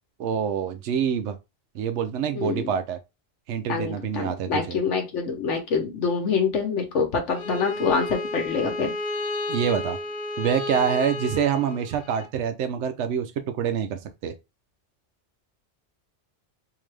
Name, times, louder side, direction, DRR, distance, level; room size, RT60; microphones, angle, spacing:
voice 1, 0.2-1.4 1.7-3.0 3.5-4.8 9.5-10.0 10.4-13.3 13.6-14.3, right 8 dB, 80° right, 0.9 m, -26 dB
voice 2, 2.3-2.7 3.7-8.9, left 5 dB, 85° left, 1.2 m, -26 dB
Bowed string instrument, 7.3-12.3, left 2 dB, 70° left, 0.9 m, -32 dB
3.7 x 2.7 x 3.2 m
omnidirectional pair, 1.2 m